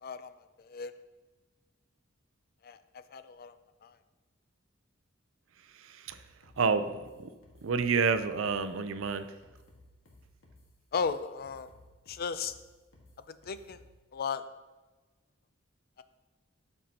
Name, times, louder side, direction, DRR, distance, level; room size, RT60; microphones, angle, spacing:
voice 1, 0.0-0.3 0.6-0.9 2.6-3.6 3.8-4.0 10.9-11.7 12.1-12.6 13.5-13.8 14.1-14.4 16.0-16.1, left 6 dB, 50° left, 12 dB, 0.4 m, -35 dB
voice 2, 5.8-6.2 6.6-7.3 7.6-9.3, right 5 dB, 70° right, 10 dB, 0.5 m, -29 dB
sound 1, 6.1-14.0, left 1 dB, 90° left, 1.7 m, -59 dB
12.5 x 5.4 x 2.9 m, 1.2 s
head